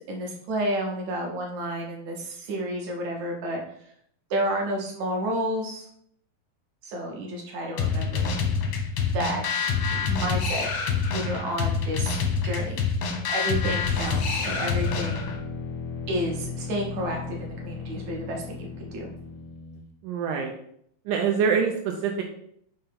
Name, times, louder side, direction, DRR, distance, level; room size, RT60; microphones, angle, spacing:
voice 1, 0.0-3.6 4.3-5.9 6.8-8.4 9.1-9.4 10.1-12.2 12.4-12.8 13.3-15.3 16.1-19.1, right 1 dB, 65° right, 0 dB, 1.9 m, -31 dB
sound 1, 7.8-15.4, left 5 dB, 75° left, 1.5 m, -26 dB
sound 2, 13.7-19.9, left 4 dB, 90° left, 2.6 m, -36 dB
voice 2, 20.0-20.5 21.1-22.2, right 6 dB, 85° right, 3 dB, 1.8 m, -25 dB
6.6 x 2.9 x 5.1 m, 0.68 s
omnidirectional pair, 4.2 m